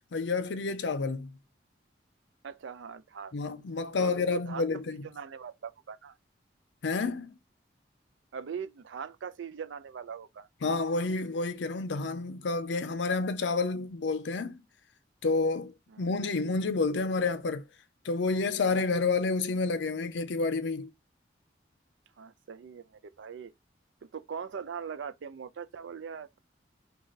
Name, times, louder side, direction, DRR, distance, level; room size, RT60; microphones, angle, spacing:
voice 1, 0.1-1.4 3.3-5.0 6.8-7.4 10.6-14.6 15.2-15.7 16.0-17.6 18.0-20.9, left 3 dB, 75° left, 0.5 m, -29 dB
voice 2, 2.4-3.3 4.0-4.7 5.1-6.2 8.3-10.5 15.9-16.0 22.2-23.5 24.1-26.4, right 6 dB, 85° right, 0.4 m, -41 dB
3.2 x 2.3 x 4.0 m
head